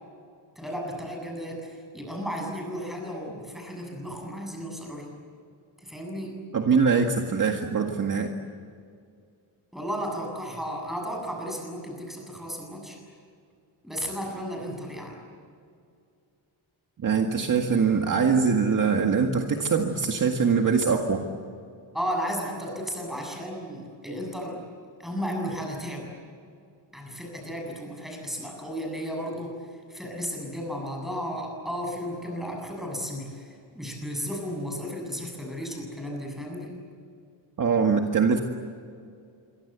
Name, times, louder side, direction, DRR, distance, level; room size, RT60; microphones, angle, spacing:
voice 1, 0.6-5.1 5.8-6.3 9.7-13.0 13.8-15.2 21.9-24.7 25.0-26.1 26.9-29.6 29.9-36.7, equal, ahead, 0 dB, 7.6 m, -34 dB
voice 2, 6.5-8.3 17.0-21.3 37.6-38.4, right 5 dB, 40° right, 3 dB, 1.9 m, -23 dB
28.0 x 24.0 x 8.2 m, 2.3 s
wide cardioid pair, 170°, 47 cm